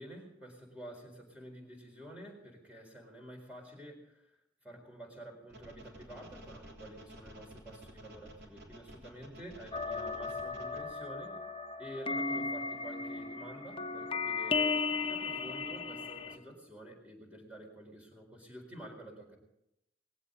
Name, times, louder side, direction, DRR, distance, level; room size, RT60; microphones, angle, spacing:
voice 1, 0.0-4.3 4.6-11.5 11.8-14.8 15.1-19.4, right 1 dB, 5° right, 1 dB, 4.3 m, -49 dB
sound 1, 5.5-10.8, right 1 dB, 60° right, 3.5 m, -52 dB
sound 2, 9.7-16.4, left 4 dB, 30° left, 0.9 m, -35 dB
20.0 x 16.0 x 3.9 m, 0.82 s
head